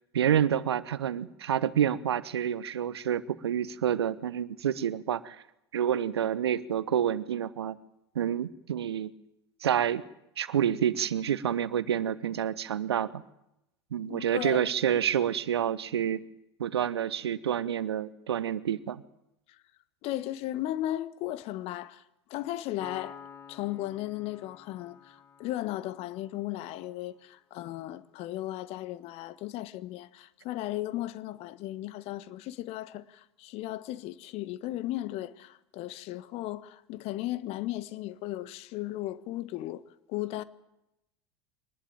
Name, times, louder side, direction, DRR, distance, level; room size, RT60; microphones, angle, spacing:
voice 1, 0.1-5.4 5.7-7.8 8.1-9.1 9.6-10.0 10.4-13.2 13.9-16.2 16.6-19.0, right 9 dB, 70° right, 1.1 m, -28 dB
voice 2, 14.1-14.6 20.0-22.0 22.3-23.2 23.5-39.8 40.1-40.4, left 15 dB, 45° left, 1.5 m, -36 dB
Piano, 22.8-26.4, left 6 dB, 20° left, 1.9 m, -49 dB
24.0 x 20.0 x 9.0 m
figure-of-eight pair, 80°, 14 cm